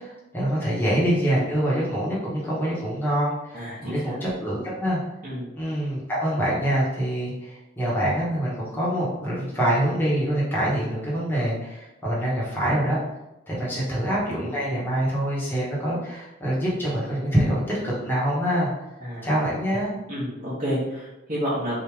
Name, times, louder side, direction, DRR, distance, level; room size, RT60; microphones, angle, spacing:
voice 1, 0.0-5.0 5.5-13.0 13.5-18.7 19.2-19.9, equal, 10° left, -7 dB, 1.5 m, -25 dB
voice 2, 3.5-4.2 5.2-5.5 13.8-13.9 19.0-19.3 20.1-21.8, equal, 40° right, -12 dB, 1.5 m, -30 dB
4.3 x 3.4 x 3.5 m, 0.95 s
head